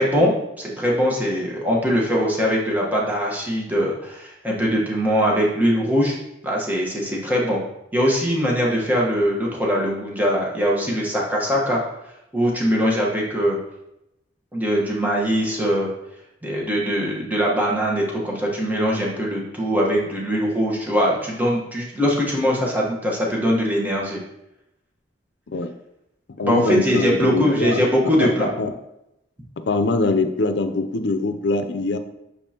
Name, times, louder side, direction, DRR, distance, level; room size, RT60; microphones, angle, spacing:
voice 1, 0.0-6.1 6.4-7.6 7.9-11.8 12.3-13.6 14.5-15.9 16.4-24.2 26.4-28.5, equal, 10° right, -4 dB, 1.1 m, -21 dB
voice 2, 26.4-28.7 29.7-32.0, left 3 dB, 70° left, 9 dB, 0.6 m, -23 dB
6.9 x 5.4 x 2.8 m, 0.86 s
head